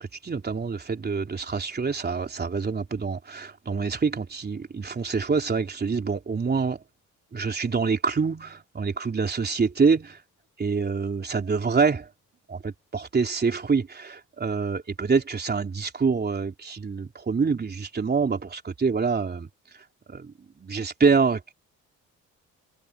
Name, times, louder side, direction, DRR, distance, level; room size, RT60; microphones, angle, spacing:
voice 1, 0.0-6.8 7.3-10.2 10.6-12.1 12.5-19.5 20.1-21.5, right 5 dB, 35° right, 3.6 m, -26 dB
cardioid pair, 90°, 30 cm